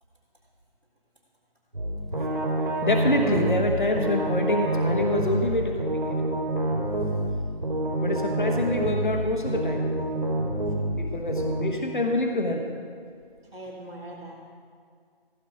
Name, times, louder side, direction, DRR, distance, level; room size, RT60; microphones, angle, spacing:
sound 1, 1.7-11.7, right 1 dB, 60° right, 3.7 m, -27 dB
voice 1, 2.8-6.1 8.0-9.9 11.0-12.6, left 2 dB, 55° left, 3 dB, 1.3 m, -26 dB
voice 2, 13.4-14.3, right 1 dB, 85° right, -9 dB, 3.4 m, -41 dB
16.0 x 9.0 x 5.0 m, 2.1 s
figure-of-eight pair, 180°, 30 cm